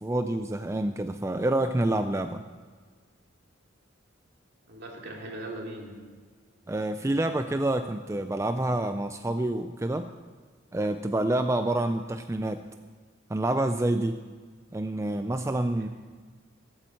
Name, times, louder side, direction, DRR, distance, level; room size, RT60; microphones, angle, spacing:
voice 1, 0.0-2.4 6.7-10.1 10.7-12.6 13.3-14.2 14.7-15.9, right 1 dB, 15° right, 8 dB, 0.4 m, -27 dB
voice 2, 4.7-6.0 14.9-15.3 15.8-15.9, right 1 dB, 55° right, 0 dB, 2.7 m, -40 dB
15.0 x 8.8 x 7.8 m, 1.5 s
head